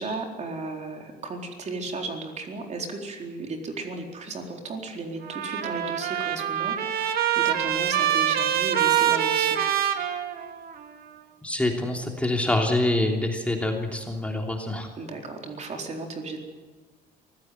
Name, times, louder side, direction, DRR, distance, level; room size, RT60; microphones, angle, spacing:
voice 1, 0.0-9.6 15.0-16.4, right 3 dB, 45° right, 2 dB, 4.2 m, -35 dB
Trumpet, 5.2-10.8, right 10 dB, 65° right, 2.2 m, -25 dB
voice 2, 11.4-14.9, left 1 dB, 5° left, 1 dB, 3.1 m, -26 dB
23.5 x 16.0 x 9.4 m, 1.4 s
cardioid pair, 110°, 17 cm